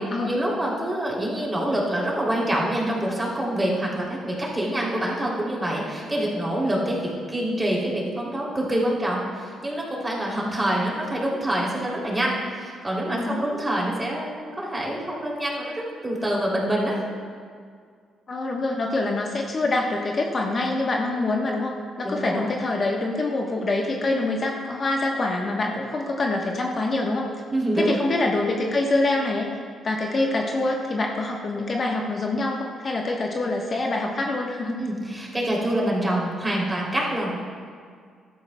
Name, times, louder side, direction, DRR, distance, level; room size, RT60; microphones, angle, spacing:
voice 1, 0.3-17.0 22.0-22.4 27.5-27.9 34.8-37.3, right 1 dB, 15° right, -4 dB, 3.1 m, -26 dB
voice 2, 13.1-13.4 18.3-21.7 22.0-27.3 27.7-29.5 29.8-34.8, left 2 dB, 40° left, 0 dB, 1.1 m, -25 dB
14.5 x 12.0 x 2.3 m, 2.1 s
cardioid pair, 90°, 0 cm